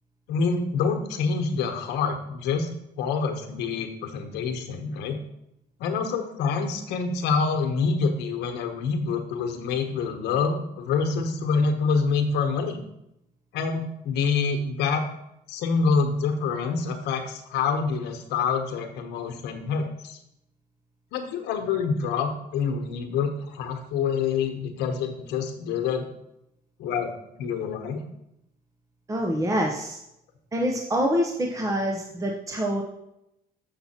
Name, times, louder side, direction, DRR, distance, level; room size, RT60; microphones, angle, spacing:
voice 1, 0.3-2.7 3.0-5.2 5.8-12.8 13.5-15.0 15.5-20.2 21.1-26.1 26.8-27.1 27.4-28.0, left 5 dB, 85° left, 5 dB, 1.2 m, -26 dB
voice 2, 29.1-30.0 30.5-32.8, equal, 20° right, 0 dB, 1.0 m, -26 dB
7.5 x 5.8 x 4.4 m, 0.82 s
cardioid pair, 110°, 17 cm